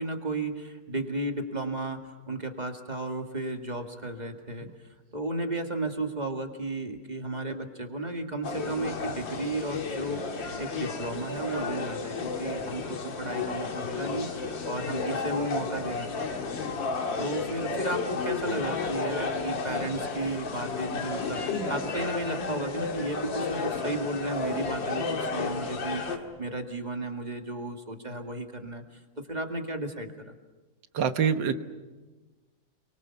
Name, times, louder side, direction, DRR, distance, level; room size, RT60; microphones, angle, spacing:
voice 1, 0.0-4.7 5.1-16.5 17.2-30.3, right 2 dB, 25° right, 4 dB, 2.2 m, -34 dB
sound 1, 8.4-26.2, left 4 dB, 85° left, 2.7 m, -32 dB
voice 2, 30.9-31.5, right 7 dB, 75° right, 9 dB, 1.9 m, -24 dB
29.5 x 23.0 x 7.2 m, 1.2 s
omnidirectional pair, 2.0 m